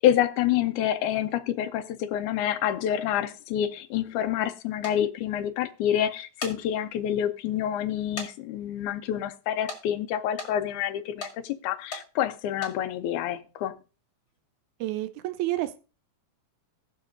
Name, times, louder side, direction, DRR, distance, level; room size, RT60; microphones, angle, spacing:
voice 1, 0.0-13.8, left 10 dB, 85° left, 2.1 m, -27 dB
sound 1, 4.8-5.0 6.2-6.6 7.1-7.2 8.2-8.3 8.6-8.7 9.7-9.8 10.4-10.5 11.2-11.3 11.9-12.0 12.5-12.7, left 3 dB, 25° left, 2.0 m, -36 dB
voice 2, 14.8-15.8, right 15 dB, 80° right, 2.0 m, -29 dB
18.5 x 6.6 x 2.5 m
omnidirectional pair, 3.5 m